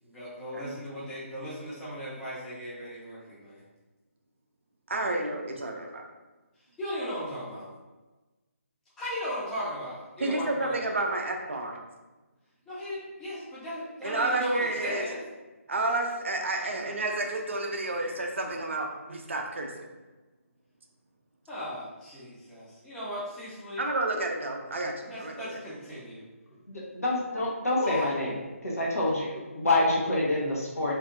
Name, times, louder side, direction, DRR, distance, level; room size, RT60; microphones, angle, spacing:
voice 1, 0.0-3.6 6.8-7.7 9.0-10.9 12.7-15.2 21.5-23.8 25.0-26.2 27.8-28.1, equal, 5° left, -10 dB, 0.6 m, -37 dB
voice 2, 4.9-6.0 10.2-11.8 14.0-15.1 15.7-19.9 23.8-25.6, right 2 dB, 55° right, 2 dB, 0.4 m, -30 dB
voice 3, 26.7-28.3 28.6-30.9, left 2 dB, 80° left, -4 dB, 0.9 m, -27 dB
2.6 x 2.5 x 2.4 m, 1.2 s
figure-of-eight pair, 150°, 8 cm